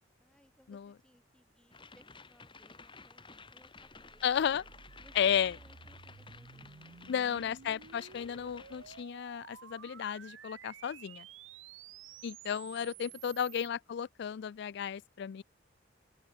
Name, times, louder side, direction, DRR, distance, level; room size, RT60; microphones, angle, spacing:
voice 1, 0.2-4.6 5.0-7.1 12.4-13.3, equal, 5° left, 4.6 m, -65 dB
sound 1, 1.7-9.0, left 4 dB, 25° left, 2.7 m, -54 dB
sound 2, 3.8-13.7, right 8 dB, 75° right, 0.7 m, -53 dB
voice 2, 4.2-4.6 5.2-5.5 7.1-11.3 12.2-15.4, left 8 dB, 60° left, 0.3 m, -33 dB
head